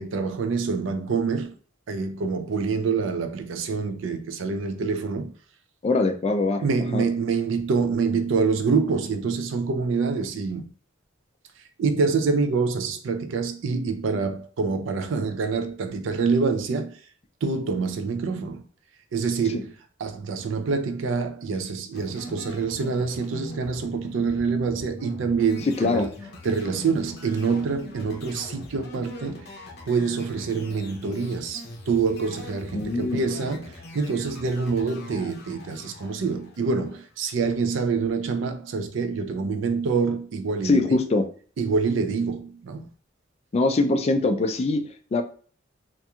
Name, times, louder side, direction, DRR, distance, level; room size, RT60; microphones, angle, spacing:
voice 1, 0.0-1.5 1.9-5.3 6.6-10.7 11.8-17.0 17.4-18.6 19.1-19.7 20.0-26.1 26.4-29.5 29.9-41.0 41.6-42.9, right 4 dB, 80° right, 0.4 m, -26 dB
voice 2, 5.8-6.6 6.9-7.0 25.8-26.1 32.7-33.2 40.6-41.3 43.5-45.2, left 3 dB, 35° left, 0.3 m, -22 dB
sound 1, 21.9-37.3, left 1 dB, 55° left, 0.7 m, -42 dB
2.9 x 2.5 x 2.3 m
head